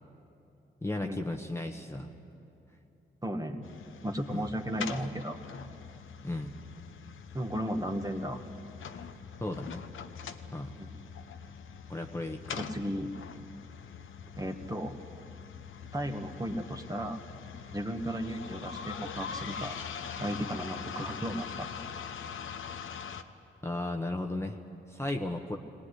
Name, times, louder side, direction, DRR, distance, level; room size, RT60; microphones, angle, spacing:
voice 1, 0.8-2.1 4.3-4.5 6.2-6.6 9.4-9.8 10.5-10.7 11.9-12.6 23.6-24.6 24.9-25.6, left 2 dB, 15° left, 3 dB, 1.3 m, -35 dB
voice 2, 3.2-3.7 4.0-5.4 7.3-8.4 10.8-11.0 12.6-13.1 14.4-15.0 15.9-17.2 17.7-19.8 20.2-21.7, equal, 15° right, 4 dB, 1.9 m, -35 dB
sound 1, 3.6-23.2, left 7 dB, 75° left, 1.0 m, -43 dB
19.0 x 18.5 x 9.9 m, 2.8 s
cardioid pair, 60°, 20 cm